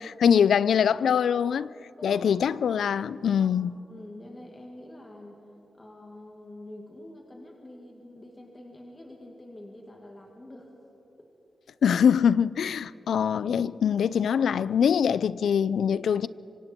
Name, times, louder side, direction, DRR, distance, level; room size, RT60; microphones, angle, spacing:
voice 1, 0.0-1.7 2.0-3.7 11.8-16.3, left 7 dB, 90° left, 0.4 m, -23 dB
voice 2, 2.0-2.5 3.4-3.6 3.9-5.4 5.7-10.7 11.2-11.3, left 1 dB, 20° left, 2.1 m, -46 dB
25.5 x 25.0 x 4.5 m
wide cardioid pair, 140°, 0 cm